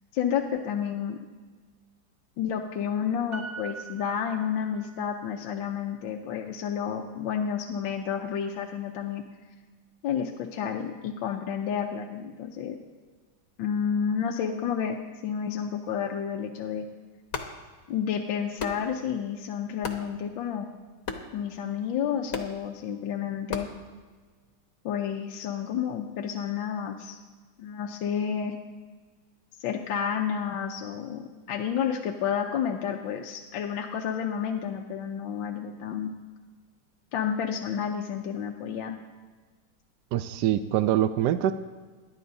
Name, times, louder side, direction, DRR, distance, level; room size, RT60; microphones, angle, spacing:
voice 1, 0.1-1.2 2.4-9.2 10.0-12.8 13.6-16.9 17.9-20.7 21.3-23.7 24.8-27.2 27.6-28.6 29.6-36.1 37.1-39.0, left 8 dB, 80° left, 1 dB, 1.5 m, -30 dB
Piano, 3.3-5.1 5.4-5.5, right 4 dB, 50° right, 1.6 m, -42 dB
sound 1, 17.2-24.6, left 4 dB, 50° left, 1.4 m, -41 dB
voice 2, 40.1-41.5, right 11 dB, 75° right, 10 dB, 1.0 m, -24 dB
22.5 x 11.0 x 2.7 m, 1.4 s
omnidirectional pair, 2.1 m